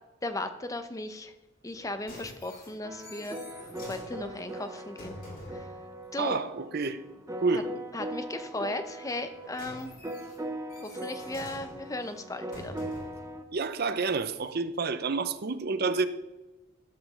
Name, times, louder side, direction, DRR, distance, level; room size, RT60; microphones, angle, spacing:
voice 1, 0.2-1.3 1.6-5.1 5.5-5.7 6.1-6.4 7.5-7.6 7.9-9.9 10.8-12.8, left 2 dB, 15° left, 0.7 m, -36 dB
sound 1, 1.7-5.7 9.1-13.3 14.0-14.1, left 1 dB, 45° left, 3.9 m, -47 dB
sound 2, 2.8-13.4, right 1 dB, 15° right, 0.7 m, -41 dB
voice 2, 6.2-7.0 7.4-7.7 13.5-16.1, right 4 dB, 50° right, 0.6 m, -29 dB
12.5 x 5.2 x 6.4 m
head